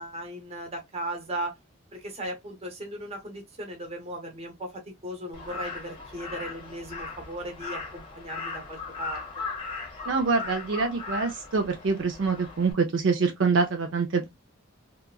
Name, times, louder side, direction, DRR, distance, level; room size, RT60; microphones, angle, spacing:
voice 1, 0.0-1.6 1.9-9.2, right 1 dB, 30° right, 0.9 m, -37 dB
Crow, 5.3-12.7, left 4 dB, 25° left, 0.7 m, -38 dB
voice 2, 10.1-14.3, right 4 dB, 65° right, 0.5 m, -25 dB
2.8 x 2.3 x 2.2 m
head